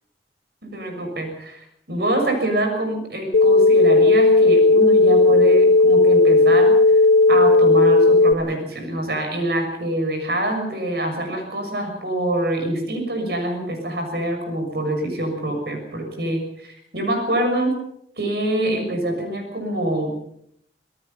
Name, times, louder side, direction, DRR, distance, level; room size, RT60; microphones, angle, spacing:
voice 1, 0.6-7.0 7.3-17.7 18.2-20.1, right 1 dB, 65° right, 4 dB, 6.5 m, -25 dB
sound 1, 3.3-8.3, left 2 dB, 90° left, 0.8 m, -14 dB
27.0 x 18.5 x 5.7 m, 0.72 s
head